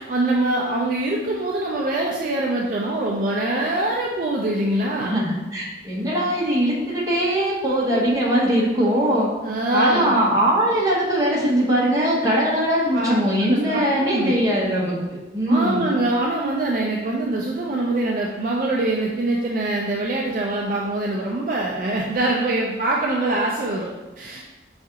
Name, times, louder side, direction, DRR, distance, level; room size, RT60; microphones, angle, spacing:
voice 1, 0.0-5.2 7.9-8.1 9.4-10.1 12.9-13.2 13.5-14.4 15.5-24.4, right 2 dB, 50° right, -2 dB, 0.3 m, -24 dB
voice 2, 5.0-9.3 9.7-15.9, equal, 20° right, -5 dB, 0.8 m, -21 dB
4.7 x 2.4 x 2.7 m, 1.1 s
head